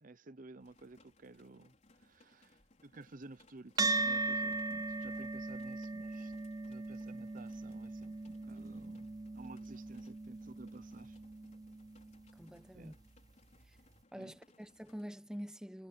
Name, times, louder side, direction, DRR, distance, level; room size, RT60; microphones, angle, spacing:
voice 1, 0.0-6.3 6.7-9.1 9.3-11.2 12.7-12.9 14.1-14.4, right 2 dB, 45° right, 0.8 m, -54 dB
sound 1, 0.6-15.1, left 2 dB, 35° left, 4.1 m, -67 dB
sound 2, 3.8-12.4, right 3 dB, 20° right, 0.4 m, -38 dB
voice 2, 12.4-12.9 14.1-15.9, equal, 5° right, 1.0 m, -46 dB
head